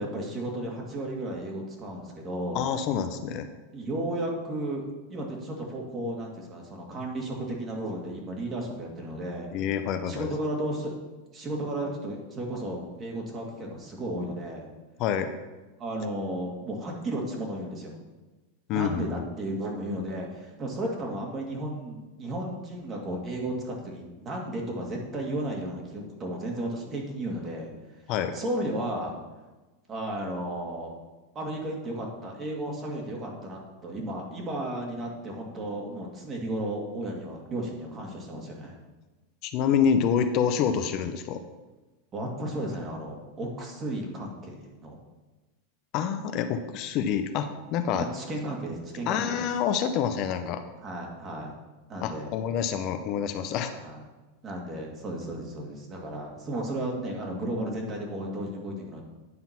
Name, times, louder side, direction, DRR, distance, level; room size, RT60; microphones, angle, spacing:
voice 1, 0.0-2.6 3.7-9.5 10.1-10.9 11.3-14.7 15.8-17.9 18.7-27.7 28.3-29.1 29.9-30.9 31.3-38.8 42.1-45.0 47.9-49.5 50.8-51.5 51.9-52.3 53.8-54.0 54.4-59.0, right 1 dB, 30° right, -1 dB, 2.1 m, -34 dB
voice 2, 2.5-3.5 9.5-10.3 15.0-15.3 18.7-19.2 28.1-28.4 39.4-41.4 45.9-48.1 49.1-50.6 52.0-53.7, left 8 dB, 50° left, 8 dB, 0.6 m, -27 dB
9.4 x 3.8 x 5.8 m, 1.2 s
hypercardioid pair, 110°, 0 cm